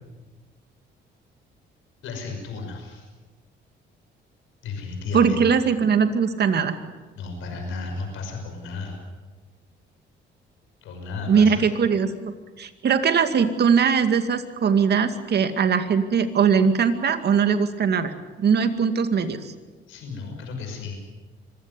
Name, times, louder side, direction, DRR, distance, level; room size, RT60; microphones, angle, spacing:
voice 1, 2.0-3.1 4.6-5.4 7.1-9.0 10.8-11.6 19.9-21.0, left 4 dB, 85° left, 3 dB, 5.9 m, -34 dB
voice 2, 5.1-6.8 11.3-18.1 18.4-19.5, right 6 dB, 55° right, 9 dB, 2.3 m, -21 dB
25.0 x 16.0 x 9.7 m, 1.3 s
cardioid pair, 90°, 20 cm